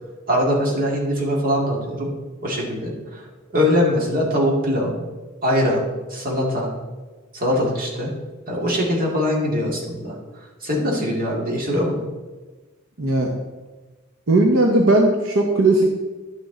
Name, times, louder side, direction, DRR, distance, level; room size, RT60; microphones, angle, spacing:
voice 1, 0.3-2.1 2.4-3.2 3.5-5.1 5.4-5.8 6.1-6.7 7.3-8.1 8.5-12.0, equal, 45° right, -2 dB, 2.1 m, -22 dB
voice 2, 13.0-13.3 14.3-15.9, right 2 dB, 75° right, 1 dB, 0.9 m, -17 dB
11.0 x 6.3 x 3.9 m, 1.3 s
head